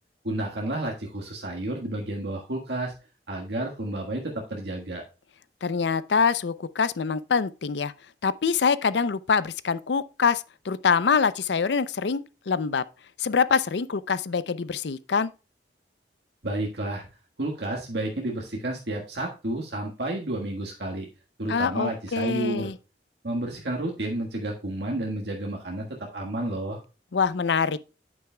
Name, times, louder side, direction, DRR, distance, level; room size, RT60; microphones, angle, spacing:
voice 1, 0.2-2.9 3.3-5.0 16.4-17.1 17.4-21.1 21.4-22.7 23.2-25.9 26.1-26.8, right 1 dB, 70° right, 1.6 m, -31 dB
voice 2, 5.6-7.9 8.2-12.8 13.2-15.3 21.5-22.7 27.1-27.8, left 5 dB, 70° left, 0.5 m, -25 dB
9.5 x 8.6 x 2.3 m
head